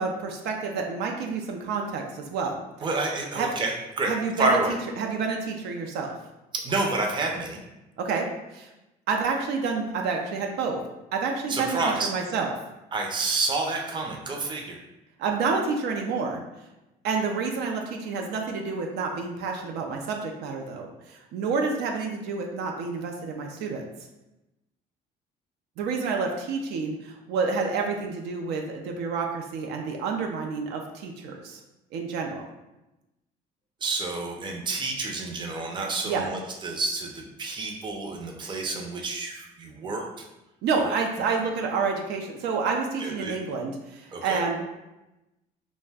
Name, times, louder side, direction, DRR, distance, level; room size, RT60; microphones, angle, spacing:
voice 1, 0.0-2.9 3.3-3.5 4.1-6.1 8.0-8.3 8.5-8.7 9.1-10.8 11.1-12.5 15.2-16.4 17.0-23.8 25.8-31.6 31.9-32.5 36.0-36.3 40.6-44.6, right 4 dB, 80° right, 2 dB, 0.4 m, -29 dB
voice 2, 2.8-4.7 6.6-7.6 11.5-12.1 12.9-14.8 33.8-40.0 43.0-43.4 44.1-44.4, right 3 dB, 25° right, 1 dB, 0.5 m, -29 dB
2.5 x 2.1 x 3.4 m, 0.96 s
cardioid pair, 110°, 17 cm